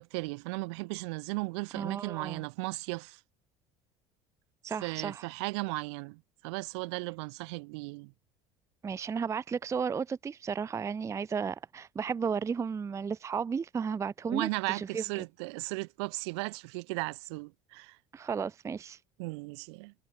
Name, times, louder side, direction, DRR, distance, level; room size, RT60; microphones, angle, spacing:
voice 1, 0.0-3.2 4.8-8.1 14.3-18.0 19.2-19.9, right 27 dB, 80° right, 1.9 m, -36 dB
voice 2, 1.8-2.4 4.6-5.3 8.8-15.0 18.1-19.0, right 6 dB, 20° right, 0.4 m, -34 dB
supercardioid pair, 85°, 14 cm